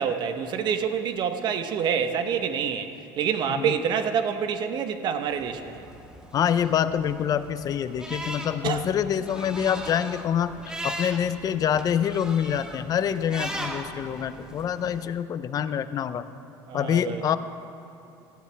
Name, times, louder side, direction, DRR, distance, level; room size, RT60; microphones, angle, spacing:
voice 1, 0.0-5.9 8.6-8.8 16.7-17.2, right 7 dB, 50° right, 8 dB, 1.0 m, -27 dB
sound 1, 5.3-15.1, right 1 dB, 10° right, 1.2 m, -39 dB
voice 2, 6.3-10.6 10.8-16.2 16.7-17.4, left 9 dB, 40° left, 12 dB, 0.6 m, -26 dB
17.5 x 13.5 x 3.5 m, 2.8 s
supercardioid pair, 110°, 10 cm